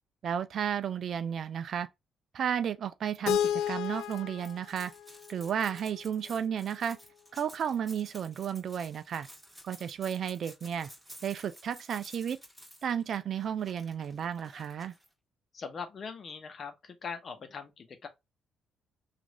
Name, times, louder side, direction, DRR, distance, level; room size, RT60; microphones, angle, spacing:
voice 1, 0.2-1.9 2.3-4.9 5.3-7.0 7.3-9.3 9.6-10.9 11.2-12.4 12.8-14.9, right 8 dB, 60° right, 0.3 m, -33 dB
Keyboard (musical), 3.3-6.2, left 10 dB, 85° left, 0.4 m, -33 dB
sound 1, 3.4-15.1, equal, 5° right, 1.8 m, -53 dB
voice 2, 15.5-18.1, left 5 dB, 45° left, 0.8 m, -41 dB
3.0 x 2.5 x 2.9 m
cardioid pair, 90°, 0 cm